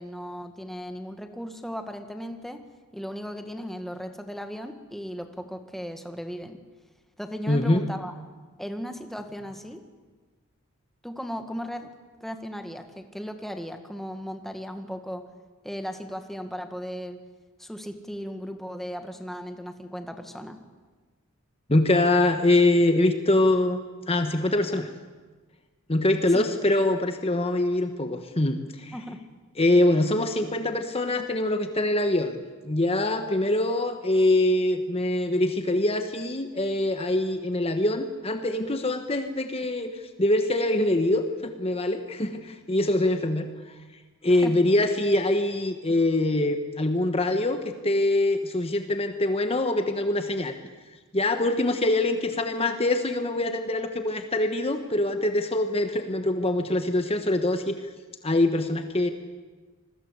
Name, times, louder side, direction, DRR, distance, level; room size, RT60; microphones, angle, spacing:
voice 1, 0.0-2.6 2.9-6.6 7.2-8.1 8.6-9.8 11.0-11.9 12.2-15.3 15.6-17.2 17.6-20.6 26.3-26.4 28.9-29.2 44.3-44.5, equal, ahead, 6 dB, 1.6 m, -36 dB
voice 2, 7.5-7.9 21.7-23.8 24.1-24.9 25.9-28.9 29.6-32.4 32.6-43.5 44.2-50.5 51.1-57.7 58.2-59.1, left 1 dB, 25° left, 7 dB, 1.3 m, -24 dB
27.0 x 21.0 x 8.3 m, 1.4 s
head